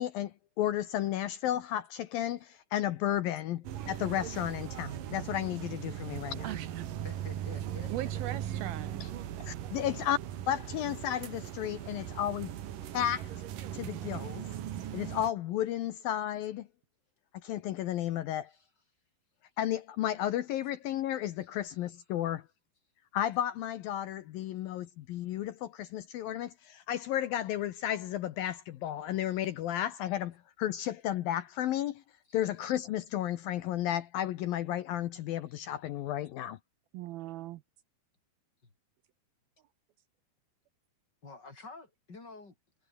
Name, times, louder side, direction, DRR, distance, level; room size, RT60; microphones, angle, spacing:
voice 1, 0.0-6.5 9.0-9.1 9.5-10.2 10.5-12.5 12.9-13.3 13.7-14.4 14.9-16.7 17.4-18.5 19.6-22.4 23.1-32.0 32.3-36.6, left 12 dB, 70° left, 2.5 m, -33 dB
sound 1, 3.6-15.3, right 11 dB, 60° right, 3.0 m, -39 dB
voice 2, 6.4-6.9 7.9-8.9 36.9-37.6, right 15 dB, 75° right, 2.4 m, -39 dB
voice 3, 7.0-8.1 18.5-18.6 21.4-21.9 24.6-24.7 32.3-32.4 35.5-35.6 41.2-42.5, left 3 dB, 25° left, 4.3 m, -50 dB
omnidirectional pair, 4.8 m